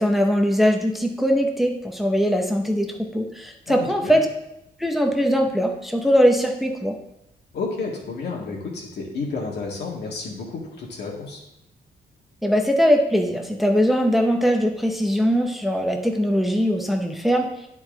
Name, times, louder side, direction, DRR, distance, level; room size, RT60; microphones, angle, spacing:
voice 1, 0.0-4.3 4.8-7.0 12.4-17.5, equal, ahead, 3 dB, 0.7 m, -21 dB
voice 2, 3.7-4.2 7.5-11.4, left 4 dB, 85° left, -2 dB, 2.0 m, -31 dB
10.0 x 4.5 x 3.8 m, 0.81 s
wide cardioid pair, 165°, 17 cm